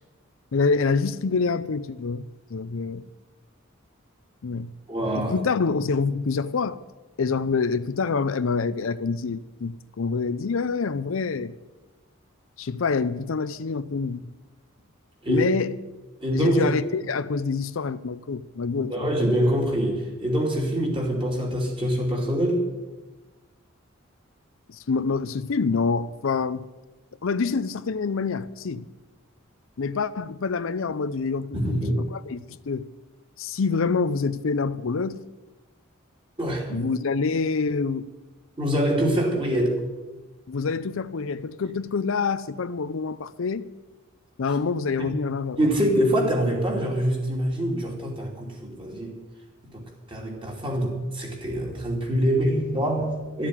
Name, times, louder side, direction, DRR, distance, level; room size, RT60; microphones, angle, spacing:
voice 1, 0.5-2.2 2.5-3.0 4.4-4.7 5.1-6.8 7.2-11.5 12.6-14.3 15.3-15.8 16.3-19.1 24.7-26.7 27.2-28.9 29.8-31.8 32.1-32.9 33.4-35.2 36.7-38.1 40.5-43.7 44.4-45.6, left 4 dB, 70° left, 0.5 m, -26 dB
voice 2, 4.9-5.4 15.2-15.5 16.2-16.8 18.9-22.6 31.5-32.0 36.4-36.8 38.6-39.9 45.0-45.1 45.6-49.2 49.7-53.5, equal, 25° right, 2.7 m, -25 dB
13.0 x 7.4 x 9.8 m
head